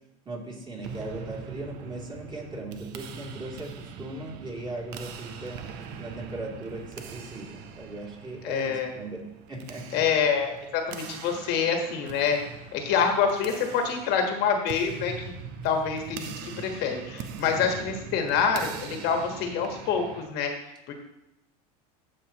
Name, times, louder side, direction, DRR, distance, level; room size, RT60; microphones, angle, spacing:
voice 1, 0.2-5.6 6.0-9.2 9.5-10.0, right 2 dB, 25° right, -2 dB, 2.7 m, -38 dB
sound 1, 0.8-20.3, right 6 dB, 55° right, 0.9 m, -42 dB
voice 2, 8.4-8.9 9.9-12.4 12.7-15.3 15.6-20.5 20.9-21.0, left 6 dB, 55° left, 4 dB, 1.4 m, -26 dB
14.5 x 5.3 x 2.9 m, 0.88 s
supercardioid pair, 110°, 20 cm